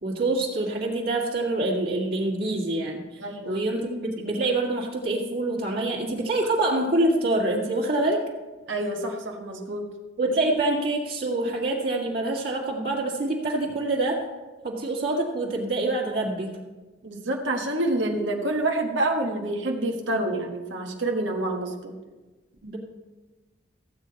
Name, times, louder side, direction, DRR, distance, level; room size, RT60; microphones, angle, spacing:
voice 1, 0.0-3.0 3.4-8.2 10.2-14.3 14.6-16.6 22.6-22.8, right 2 dB, 55° right, -2 dB, 2.0 m, -26 dB
voice 2, 3.2-3.6 8.7-9.9 17.0-21.9, right 2 dB, 85° right, 1 dB, 1.3 m, -27 dB
15.0 x 8.4 x 4.1 m, 1.2 s
head